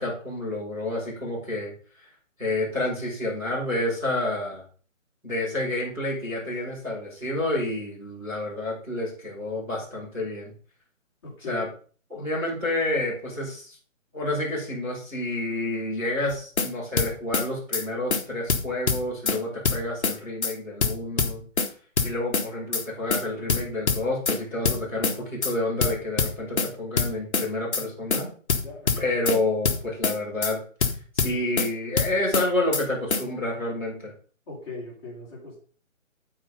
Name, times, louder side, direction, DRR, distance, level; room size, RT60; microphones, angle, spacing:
voice 1, 0.0-1.7 2.4-4.6 5.2-10.5 11.5-11.7 12.1-13.8 14.1-21.4 22.0-28.3 29.0-30.6 31.1-34.1, left 1 dB, 5° right, -12 dB, 4.7 m, -29 dB
voice 2, 11.2-11.7 28.6-29.0 34.5-35.6, left 3 dB, 20° left, -7 dB, 4.4 m, -39 dB
sound 1, 16.3-16.7 17.0-17.5 17.7-17.8 18.1-18.2 18.5-19.4 19.6-20.2 20.4-20.5 20.8-21.7 22.0-22.5 22.7-22.8 23.1-23.2 23.5-24.4 24.7-25.2 25.4-25.5 25.8-26.7 27.0-27.5 27.7-27.8 28.1-28.2 28.5-29.4 29.7-30.2 30.4-30.5 30.8-31.7 32.0-32.5 32.7-32.8 33.1-33.2, left 5 dB, 55° left, 1.6 m, -24 dB
13.0 x 5.0 x 5.4 m, 0.42 s
hypercardioid pair, 175°, 39 cm